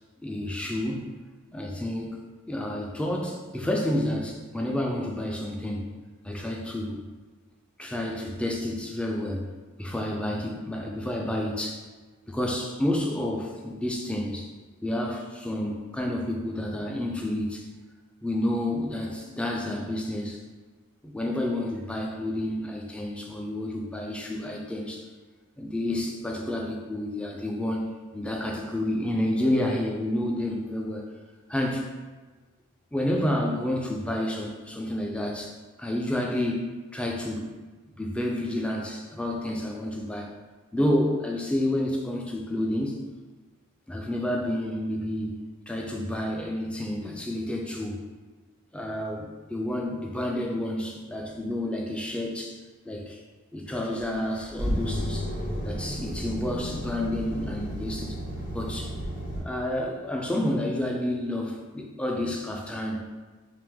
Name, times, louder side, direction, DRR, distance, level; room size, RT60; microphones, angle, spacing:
voice 1, 0.2-1.1 1.5-2.2 2.5-5.9 6.2-7.0 7.8-9.5 9.8-11.8 12.3-14.5 14.8-17.7 18.2-20.4 21.0-25.0 25.6-31.1 31.5-31.9 32.9-37.5 38.0-40.3 40.7-43.0 43.9-48.0 48.7-52.6 52.9-53.2 53.5-55.3 55.6-58.2 58.5-58.9 59.3-63.2, left 1 dB, 5° left, 0 dB, 0.3 m, -30 dB
sound 1, 53.8-59.4, equal, 45° left, 1.2 m, -32 dB
3.3 x 2.9 x 3.4 m, 1.4 s
head